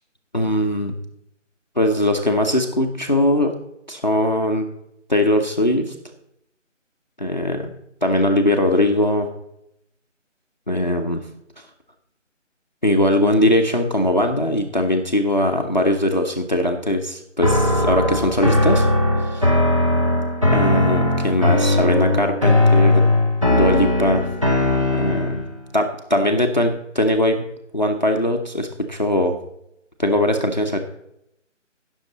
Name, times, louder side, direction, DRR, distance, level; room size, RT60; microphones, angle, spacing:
voice 1, 0.3-1.0 1.8-3.5 3.9-4.7 5.1-5.9 7.2-7.7 8.0-9.3 10.7-11.2 12.8-18.9 19.2-19.5 20.5-23.1 23.5-24.3 24.9-25.4 25.7-27.4 27.7-29.4 30.0-30.8, left 1 dB, 35° left, 4 dB, 0.8 m, -20 dB
sound 1, 17.4-25.5, left 1 dB, 25° right, 1.0 m, -18 dB
16.5 x 6.5 x 4.0 m, 0.80 s
figure-of-eight pair, 180°, 38 cm